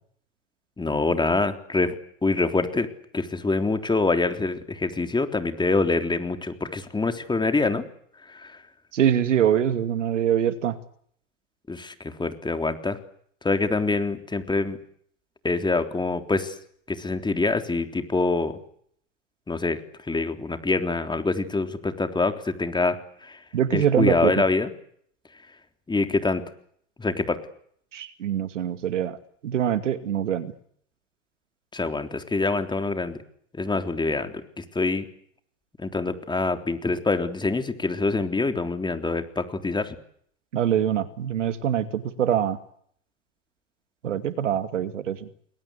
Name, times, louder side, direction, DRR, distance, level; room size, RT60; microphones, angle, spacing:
voice 1, 0.8-1.9 2.2-2.9 3.1-7.8 8.3-8.5 11.7-13.0 13.4-14.8 15.4-16.5 16.9-18.6 19.5-19.8 20.1-23.0 23.3-23.4 23.7-24.7 25.9-26.4 27.0-27.4 31.7-33.2 33.6-34.3 34.6-35.0 35.8-39.9, left 3 dB, 10° left, 7 dB, 3.6 m, -25 dB
voice 2, 8.9-10.8 23.5-24.3 27.9-29.2 29.4-30.5 40.5-42.6 44.0-45.3, right 9 dB, 80° right, 11 dB, 2.4 m, -24 dB
30.0 x 21.5 x 8.3 m, 0.65 s
hypercardioid pair, 90°, 36 cm